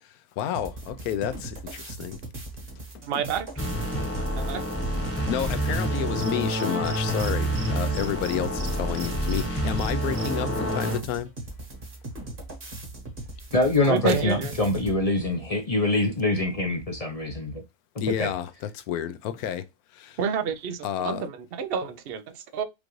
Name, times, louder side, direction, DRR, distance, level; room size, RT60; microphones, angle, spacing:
voice 1, 0.4-2.2 5.3-11.3 18.0-19.6 20.0-20.1 20.8-21.3, left 10 dB, 80° left, 1.1 m, -30 dB
sound 1, 0.5-15.0, right 2 dB, 35° right, 1.3 m, -39 dB
voice 2, 3.0-3.5 4.3-4.6 13.8-14.5 20.2-22.6, right 7 dB, 70° right, 0.5 m, -29 dB
sound 2, 3.6-11.0, right 1 dB, 10° left, 0.9 m, -28 dB
Cricket, 6.2-7.3 7.6-7.7 7.9-9.4 9.8-10.3, right 5 dB, 50° right, 0.9 m, -40 dB
voice 3, 13.5-17.6 18.2-18.3, left 2 dB, 40° left, 0.5 m, -24 dB
5.1 x 2.5 x 3.0 m
omnidirectional pair, 1.6 m